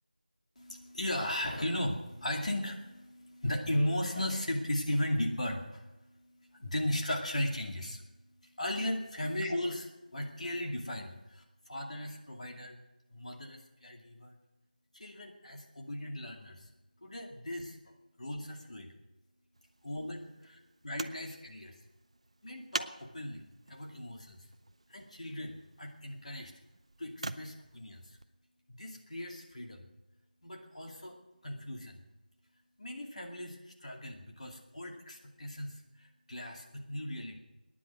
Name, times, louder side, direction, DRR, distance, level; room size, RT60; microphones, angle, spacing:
voice 1, 0.6-12.8 13.1-14.3 14.9-16.7 17.0-17.8 18.2-18.9 19.8-21.8 22.4-24.5 24.9-26.5 27.0-28.2 28.7-29.9 30.4-31.2 31.4-32.0 32.8-37.4, left 1 dB, 50° left, 1 dB, 2.4 m, -37 dB
sound 1, 19.5-28.3 29.2-29.3, right 2 dB, 40° right, 0.6 m, -46 dB
22.5 x 10.0 x 6.2 m, 1.0 s
figure-of-eight pair, 170°, 5 cm